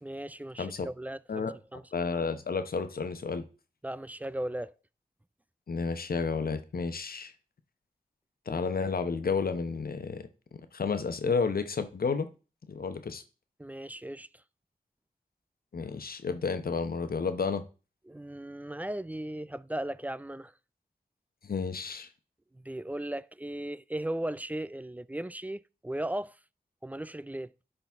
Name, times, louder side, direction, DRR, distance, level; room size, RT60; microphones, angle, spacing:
voice 1, 0.0-1.9 3.8-4.7 13.6-14.3 18.1-20.5 22.5-26.3 26.8-27.5, right 1 dB, 10° right, 0.3 m, -37 dB
voice 2, 1.9-3.4 5.7-7.3 8.5-10.3 10.7-12.3 12.7-13.2 15.7-17.6 21.4-22.1, left 5 dB, 75° left, 0.9 m, -31 dB
10.5 x 4.0 x 3.6 m
cardioid pair, 50°, 16 cm